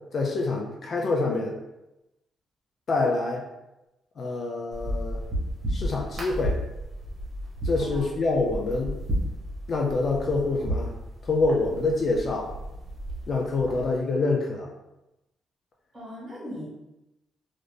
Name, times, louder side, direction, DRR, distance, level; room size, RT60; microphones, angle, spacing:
voice 1, 0.1-1.6 2.9-3.4 4.2-5.2 5.7-6.6 7.6-9.0 9.7-10.9 11.2-12.5 13.3-14.7, left 3 dB, 50° left, -1 dB, 0.4 m, -26 dB
sound 1, 4.7-13.9, equal, 45° right, 1.0 m, -33 dB
voice 2, 15.9-16.7, equal, 20° right, -6 dB, 1.5 m, -39 dB
2.5 x 2.5 x 3.4 m, 0.95 s
cardioid pair, 120°, 0 cm